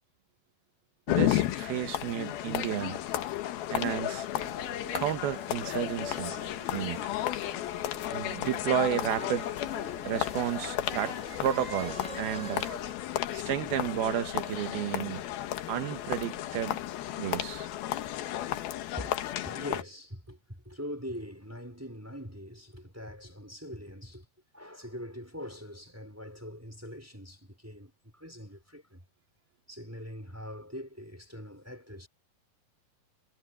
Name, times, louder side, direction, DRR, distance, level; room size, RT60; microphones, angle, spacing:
sound 1, 1.1-19.8, left 13 dB, 85° left, 3.1 m, -33 dB
voice 1, 1.1-3.0 3.7-4.3 4.9-6.4 6.7-7.1 8.1-9.5 10.0-12.7 13.3-15.2 15.7-16.8 17.2-17.7, right 11 dB, 85° right, 3.3 m, -32 dB
sound 2, 4.3-12.9, right 4 dB, 25° right, 1.9 m, -46 dB
voice 2, 19.4-24.3 24.5-29.0 29.7-32.1, equal, 5° right, 4.6 m, -43 dB
omnidirectional pair, 4.3 m